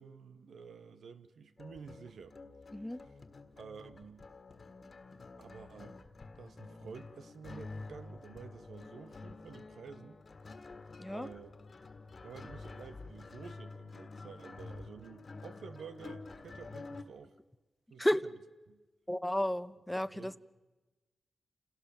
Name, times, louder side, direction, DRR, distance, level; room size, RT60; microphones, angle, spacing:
voice 1, 0.0-2.4 3.6-4.3 5.4-6.0 6.3-10.2 11.1-11.5 12.2-17.3 17.9-18.1 18.7-18.8 20.1-20.4, right 6 dB, 90° right, 11 dB, 1.1 m, -50 dB
sound 1, 1.6-17.0, left 3 dB, 50° left, 1.6 m, -49 dB
voice 2, 11.0-11.3 18.0-18.2 19.1-20.4, left 1 dB, 10° left, 15 dB, 0.6 m, -32 dB
28.5 x 17.5 x 7.0 m, 1.2 s
wide cardioid pair, 85°, 0 cm